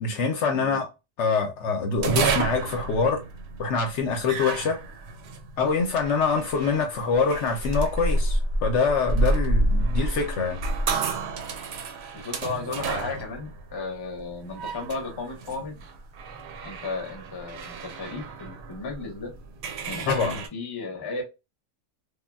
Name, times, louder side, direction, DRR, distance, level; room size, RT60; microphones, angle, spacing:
voice 1, 0.0-0.9 1.2-3.2 3.6-4.8 5.6-10.6 20.1-20.4, left 4 dB, 65° left, 0.8 m, -25 dB
sound 1, 2.0-20.5, right 2 dB, 65° right, 0.7 m, -30 dB
voice 2, 12.1-15.8 16.6-19.3 19.9-21.2, left 3 dB, 25° left, 0.5 m, -34 dB
3.3 x 2.1 x 2.2 m
omnidirectional pair, 1.4 m